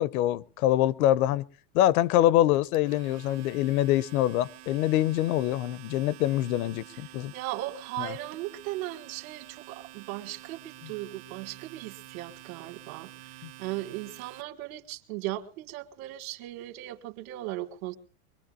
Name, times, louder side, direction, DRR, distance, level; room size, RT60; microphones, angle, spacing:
voice 1, 0.0-1.4 1.7-7.3 8.0-8.1 13.4-13.5, left 13 dB, 70° left, 0.7 m, -25 dB
Domestic sounds home sounds, 2.5-14.4, right 17 dB, 45° right, 0.7 m, -49 dB
voice 2, 6.9-18.0, right 16 dB, 65° right, 1.7 m, -37 dB
24.0 x 21.5 x 2.4 m
supercardioid pair, 180°, 46 cm